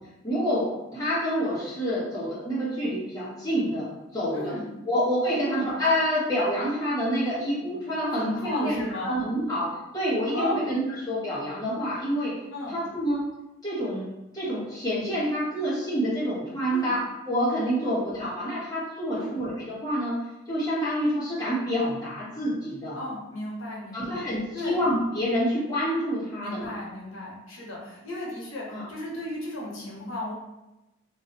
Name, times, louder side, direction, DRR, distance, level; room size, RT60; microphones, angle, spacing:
voice 1, 0.2-4.5 4.9-10.8 11.1-12.3 12.7-13.2 13.6-14.1 14.3-17.0 17.3-20.2 20.5-23.0 23.9-26.7 28.7-28.8, equal, 20° left, -9 dB, 1.3 m, -27 dB
voice 2, 4.3-4.6 5.4-5.6 8.1-9.1 10.3-10.7 12.5-12.8 16.7-16.9 17.8-18.0 19.1-19.4 22.9-24.2 24.5-24.8 26.4-30.3, left 1 dB, 90° left, -3 dB, 1.0 m, -35 dB
3.0 x 2.7 x 4.0 m, 0.96 s
head